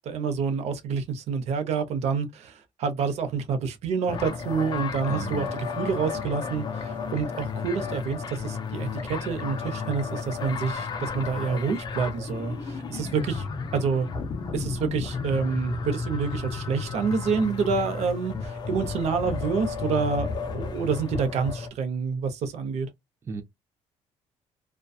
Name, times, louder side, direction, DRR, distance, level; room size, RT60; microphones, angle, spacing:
voice 1, 0.1-13.5 13.7-14.1 14.5-20.3 20.5-22.9, right 5 dB, 70° right, 0.7 m, -28 dB
sound 1, 4.1-21.7, left 5 dB, 35° left, 0.5 m, -33 dB
voice 2, 5.1-5.5 23.3-23.4, right 6 dB, 20° right, 0.4 m, -35 dB
2.6 x 2.2 x 2.3 m
cardioid pair, 135°, 12 cm